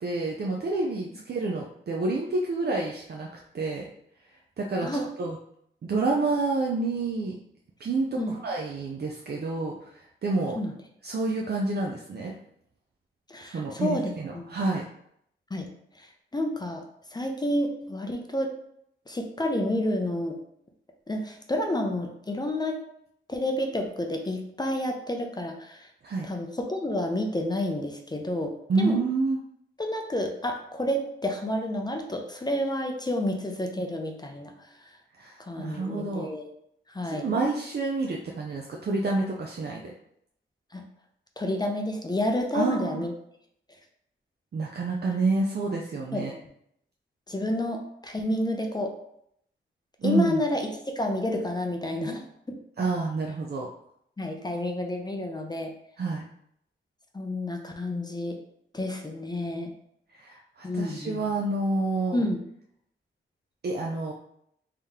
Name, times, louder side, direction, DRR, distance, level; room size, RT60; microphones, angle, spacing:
voice 1, 0.0-3.3 3.5-3.8 4.6-5.4 5.8-7.3 7.8-9.9 10.2-10.6 11.0-12.3 13.4-14.8 26.0-26.3 28.7-29.4 35.2-36.3 37.0-39.9 42.5-43.0 44.5-46.3 50.0-50.4 52.8-53.7 56.0-56.2 60.1-62.2 63.6-64.1, right 3 dB, 50° right, -1 dB, 0.5 m, -28 dB
voice 2, 13.3-14.5 15.5-15.7 16.0-16.8 17.1-18.5 19.1-20.4 21.1-22.8 23.3-25.9 26.2-29.0 29.8-34.9 35.4-36.5 36.9-37.3 40.7-40.8 41.4-43.1 46.1-46.5 47.3-48.9 50.0-52.6 54.2-55.7 57.1-58.4 58.7-59.7 60.6-61.2 62.1-62.4, left 1 dB, 20° left, 3 dB, 0.5 m, -30 dB
3.5 x 2.8 x 3.5 m, 0.72 s
wide cardioid pair, 105°, 21 cm